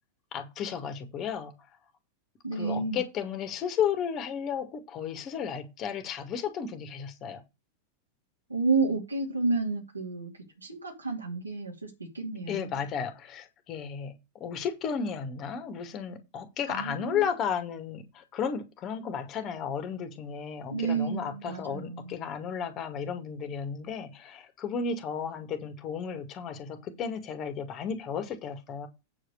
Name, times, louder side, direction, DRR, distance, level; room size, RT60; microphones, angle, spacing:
voice 1, 0.3-1.5 2.5-7.4 12.5-28.9, left 7 dB, 35° left, 2.2 m, -33 dB
voice 2, 2.4-3.0 8.5-10.3 10.6-12.7 16.7-17.2 20.7-22.1, right 4 dB, 85° right, 2.8 m, -30 dB
8.8 x 5.1 x 6.7 m
figure-of-eight pair, 90°, 0 cm